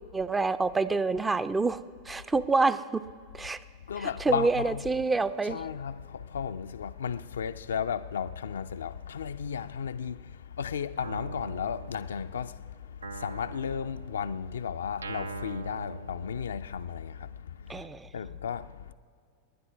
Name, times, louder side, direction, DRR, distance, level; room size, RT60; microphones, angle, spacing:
voice 1, 0.1-3.1 3.3-3.6 4.0-5.6 17.7-18.1, right 3 dB, 10° right, 0.4 m, -27 dB
voice 2, 3.9-4.8 5.4-17.9 18.1-18.9, left 7 dB, 65° left, 0.4 m, -34 dB
Guitar, 11.0-12.5 13.0-16.9, right 3 dB, 75° right, 0.4 m, -43 dB
20.5 x 9.7 x 6.0 m
figure-of-eight pair, 90°, 0 cm